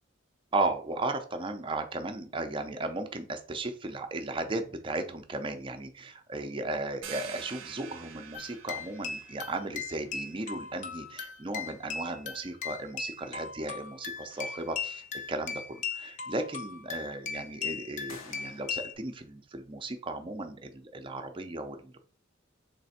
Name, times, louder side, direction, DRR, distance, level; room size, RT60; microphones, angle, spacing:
voice 1, 0.5-22.0, right 2 dB, 25° right, 6 dB, 0.5 m, -35 dB
sound 1, 7.0-12.4, right 8 dB, 85° right, 0.6 m, -48 dB
sound 2, 8.3-18.9, left 6 dB, 40° left, 0.5 m, -38 dB
sound 3, 14.3-15.3 18.1-19.1, left 5 dB, 85° left, 0.7 m, -52 dB
3.3 x 3.3 x 4.1 m, 0.42 s
head